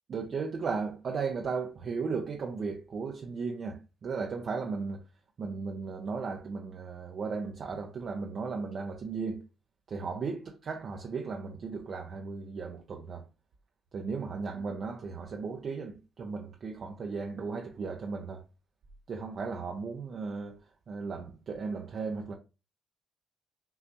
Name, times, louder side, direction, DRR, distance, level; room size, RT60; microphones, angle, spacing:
voice 1, 0.1-5.0 5.4-9.4 9.9-13.3 13.9-18.4 19.1-20.6 20.9-22.3, right 4 dB, 50° right, 0.7 m, -36 dB
5.6 x 2.7 x 3.0 m
cardioid pair, 90°, 0 cm